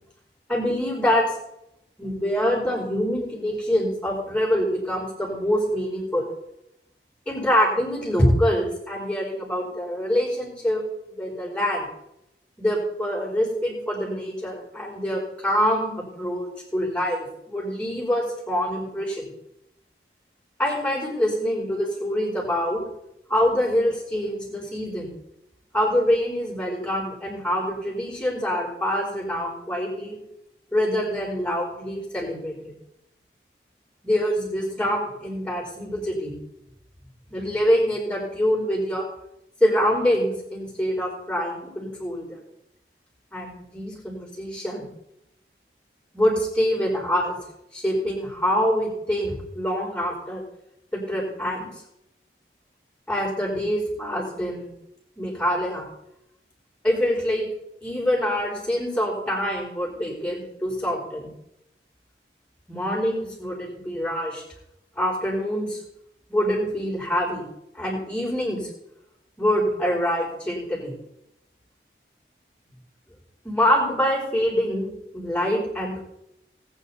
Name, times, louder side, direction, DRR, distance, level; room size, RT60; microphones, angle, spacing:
voice 1, 0.5-1.3 2.0-6.3 7.3-11.9 12.6-19.3 20.6-22.8 23.3-25.1 25.7-30.2 30.7-32.7 34.0-36.3 37.3-39.0 39.6-42.4 43.3-44.9 46.1-47.4 47.7-50.4 50.9-51.7 53.1-54.7 55.2-55.9 56.8-57.5 57.8-61.3 62.7-64.4 65.0-65.8 66.3-67.4 67.7-68.7 69.4-70.9 73.4-76.0, equal, 5° left, -3 dB, 4.2 m, -25 dB
19.5 x 9.0 x 4.2 m, 0.80 s
head